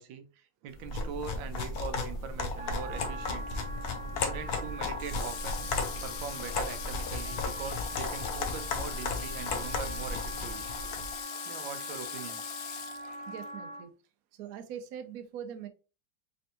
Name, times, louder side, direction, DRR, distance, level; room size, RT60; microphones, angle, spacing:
voice 1, 0.0-3.7 4.2-5.7 6.0-10.7 11.4-12.4, right 6 dB, 85° right, 1.4 m, -42 dB
sound 1, 0.8-11.1, left 3 dB, 60° left, 1.1 m, -35 dB
Wind instrument woodwind instrument, 2.6-13.9, right 1 dB, 10° right, 0.3 m, -43 dB
Water / Water tap faucet, 5.0-13.5, left 10 dB, 85° left, 0.7 m, -41 dB
voice 2, 13.3-13.9 14.3-15.7, right 9 dB, 65° right, 0.9 m, -42 dB
4.2 x 3.2 x 2.8 m
omnidirectional pair, 2.1 m